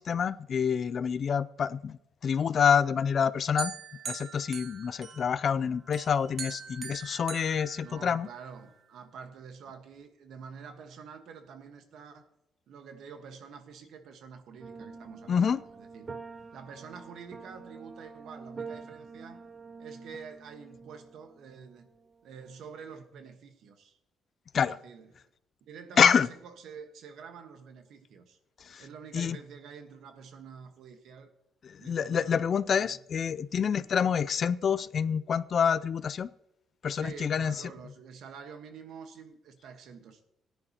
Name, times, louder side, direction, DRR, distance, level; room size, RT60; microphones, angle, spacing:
voice 1, 0.0-3.7 4.1-8.3 15.3-15.6 24.5-24.8 26.0-26.3 28.6-28.8 29.1-29.4 31.7-36.3 36.8-37.6, left 7 dB, 55° left, 0.4 m, -27 dB
sound 1, 3.6-5.5 5.9-8.5, right 7 dB, 55° right, 1.1 m, -42 dB
voice 2, 7.8-12.3 12.7-16.1 16.5-19.4 19.8-21.9 22.2-24.0 24.5-25.2 25.7-28.4 28.8-31.3 31.8-32.4 32.8-33.0 33.7-33.9 36.9-40.2, right 6 dB, 75° right, 1.3 m, -47 dB
sound 2, 14.6-23.0, right 4 dB, 35° right, 0.6 m, -47 dB
17.5 x 10.0 x 2.9 m
cardioid pair, 90°, 0 cm